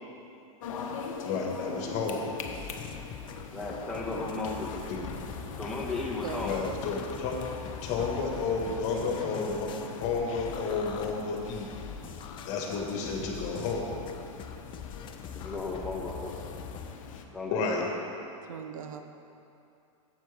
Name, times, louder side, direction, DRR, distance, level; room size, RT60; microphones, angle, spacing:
sound 1, 0.6-17.2, left 5 dB, 70° left, 0.9 m, -42 dB
voice 1, 1.3-2.3 4.9-5.1 6.4-7.4 7.8-11.7 12.5-13.9 17.5-17.8, left 4 dB, 45° left, 0 dB, 1.7 m, -31 dB
sound 2, 2.4-16.9, left 7 dB, 30° left, 0.6 m, -43 dB
voice 2, 3.5-4.8 5.6-6.5 15.3-16.3 17.3-17.9, left 3 dB, 5° left, -5 dB, 1.6 m, -35 dB
voice 3, 6.2-7.0 8.0-8.7 9.0-10.0 18.4-19.0, right 7 dB, 75° right, 6 dB, 0.8 m, -43 dB
11.5 x 8.1 x 3.5 m, 2.7 s
hypercardioid pair, 120°, 17 cm